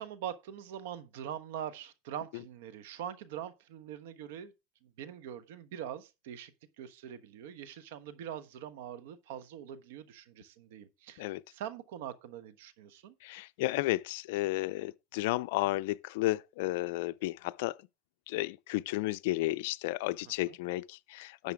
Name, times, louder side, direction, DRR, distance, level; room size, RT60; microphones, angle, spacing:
voice 1, 0.0-4.5 4.8-6.5 6.8-13.1 20.5-20.6, right 9 dB, 80° right, 1.1 m, -43 dB
voice 2, 13.2-17.8 18.3-21.5, left 18 dB, 75° left, 0.5 m, -33 dB
11.0 x 6.8 x 3.5 m
supercardioid pair, 130°, 0 cm